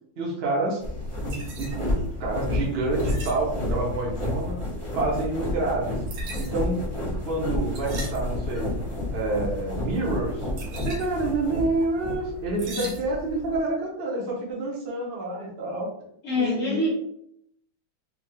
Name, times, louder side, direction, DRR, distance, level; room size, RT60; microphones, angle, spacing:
voice 1, 0.2-0.8 1.2-1.9 2.2-4.6 4.9-5.9 6.4-6.8 7.3-8.7 9.1-10.5 10.8-15.9 16.4-16.8, right 2 dB, 60° right, -4 dB, 0.6 m, -28 dB
sound 1, 0.8-12.2, left 1 dB, 10° right, 0.8 m, -31 dB
sound 2, 0.9-13.6, left 1 dB, 90° right, 1.6 m, -40 dB
voice 2, 16.2-16.9, left 2 dB, 50° left, -7 dB, 1.1 m, -25 dB
4.1 x 2.3 x 3.0 m, 0.71 s
omnidirectional pair, 2.3 m